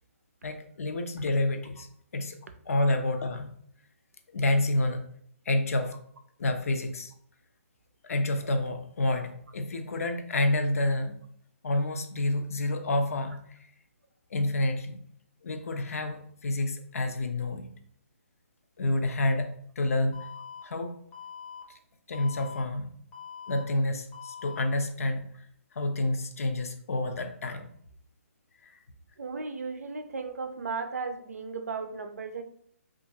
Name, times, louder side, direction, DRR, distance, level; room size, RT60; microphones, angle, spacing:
voice 1, 0.4-1.9 2.1-2.4 2.7-3.5 4.3-5.0 5.5-5.9 6.4-7.1 8.0-11.2 11.6-13.6 14.3-15.0 15.4-17.7 18.8-20.2 20.6-20.9 22.1-22.9 23.5-25.3 25.7-27.7 28.6-28.7, left 2 dB, 75° left, 6 dB, 0.5 m, -28 dB
Alarm, 20.1-20.6 21.1-21.6 22.1-22.6 23.1-23.6 24.1-24.6, left 7 dB, 20° left, 0.6 m, -43 dB
voice 2, 29.2-32.4, right 4 dB, 85° right, 8 dB, 0.5 m, -35 dB
2.8 x 2.4 x 2.7 m, 0.66 s
hypercardioid pair, 145°, 8 cm